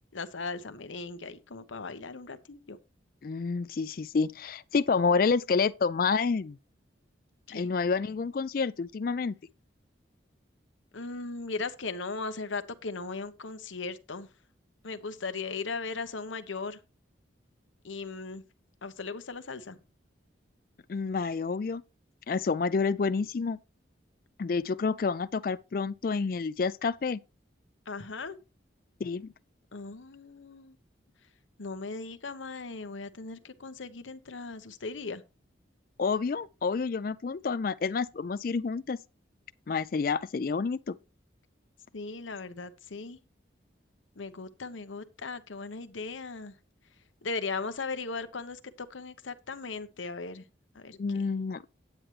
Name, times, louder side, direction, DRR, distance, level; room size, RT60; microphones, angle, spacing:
voice 1, 0.1-2.8 7.5-7.7 10.9-14.3 14.8-16.8 17.8-18.4 18.8-19.8 27.9-28.4 29.7-30.7 31.6-35.2 41.9-43.2 44.2-46.5 47.2-50.4 50.7-51.0, left 4 dB, 85° left, 1.0 m, -38 dB
voice 2, 3.2-6.6 7.5-9.3 20.9-21.8 22.3-23.6 24.4-27.2 29.0-29.3 36.0-39.0 39.7-41.0 51.0-51.6, left 4 dB, 50° left, 0.4 m, -29 dB
9.7 x 9.0 x 3.2 m
head